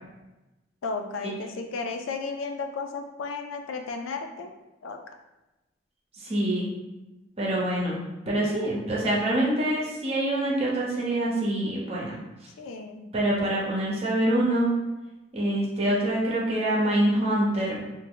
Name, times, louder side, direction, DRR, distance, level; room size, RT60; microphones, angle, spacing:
voice 1, 0.8-4.5 4.8-5.0 12.6-13.1, left 4 dB, 90° left, 4 dB, 0.4 m, -34 dB
voice 2, 6.2-6.7 7.4-8.0 8.3-12.2 13.1-14.7 15.3-17.8, right 1 dB, 30° right, -5 dB, 0.8 m, -25 dB
2.7 x 2.1 x 3.6 m, 1.0 s
head